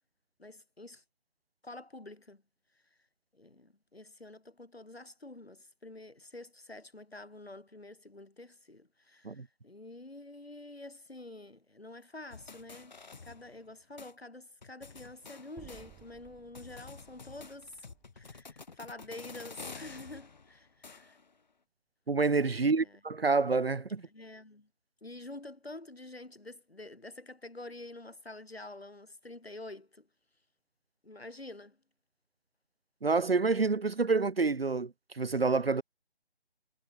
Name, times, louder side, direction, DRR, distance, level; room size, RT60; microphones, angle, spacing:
voice 1, 0.4-1.0 1.6-2.4 2.7-2.8 3.3-13.0 13.2-17.9 18.2-21.2 22.5-23.0 24.0-24.7 25.0-30.1 31.0-31.8, left 2 dB, 75° left, 4.0 m, -48 dB
sound 1, 12.3-13.7 14.0-14.1 14.6-16.3 16.5-21.3, left 4 dB, 45° left, 2.8 m, -50 dB
sound 2, 15.6-19.7, right 17 dB, 10° right, 6.0 m, -59 dB
voice 2, 22.1-24.0 33.0-35.8, right 4 dB, 70° right, 1.1 m, -28 dB
figure-of-eight pair, 155°, 31 cm